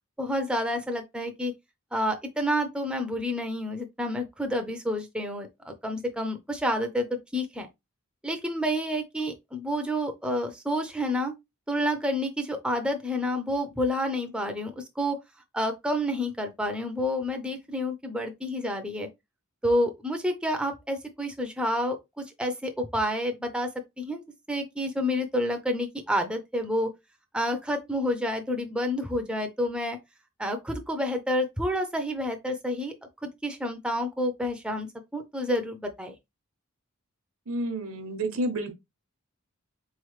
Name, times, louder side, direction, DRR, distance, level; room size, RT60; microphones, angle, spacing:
voice 1, 0.2-1.5 1.9-7.1 7.3-7.7 8.2-11.3 11.7-15.2 15.5-19.1 19.6-23.7 24.0-24.2 24.5-26.9 27.3-30.0 30.4-32.9 33.2-34.9 35.1-36.1, equal, 5° right, 0.5 m, -29 dB
voice 2, 37.5-38.7, right 1 dB, 70° right, 0.9 m, -30 dB
4.1 x 3.1 x 3.1 m
head